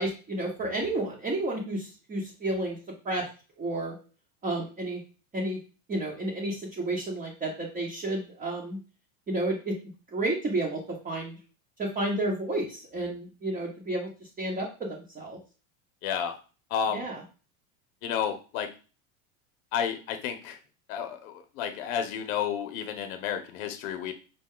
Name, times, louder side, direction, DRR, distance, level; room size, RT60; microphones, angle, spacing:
voice 1, 0.0-2.8 3.0-3.3 3.6-3.9 4.4-5.0 5.3-5.6 5.9-8.8 9.3-9.8 10.1-11.4 11.8-14.1 14.4-15.4 16.9-17.2, right 2 dB, 20° right, -2 dB, 0.9 m, -31 dB
voice 2, 16.0-16.3 16.7-17.1 18.0-18.7 19.7-20.6 20.9-24.1, left 8 dB, 75° left, 6 dB, 0.7 m, -31 dB
5.5 x 2.2 x 3.7 m, 0.35 s
supercardioid pair, 125°, 41 cm